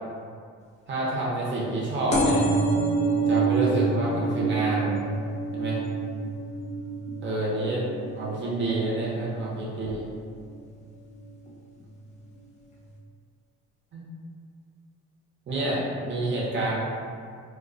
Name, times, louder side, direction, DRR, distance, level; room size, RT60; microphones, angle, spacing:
voice 1, 0.9-2.4 3.2-4.9 5.5-5.8 7.2-7.8 8.1-10.1 13.9-14.0 15.5-16.8, right 2 dB, 40° right, -5 dB, 0.7 m, -28 dB
sound 1, 2.1-9.3 9.8-10.3 11.2-11.3 11.5-11.6 11.8-11.9, right 3 dB, 25° left, 0.4 m, -27 dB
2.2 x 2.2 x 2.5 m, 2.2 s
cardioid pair, 90°, 30 cm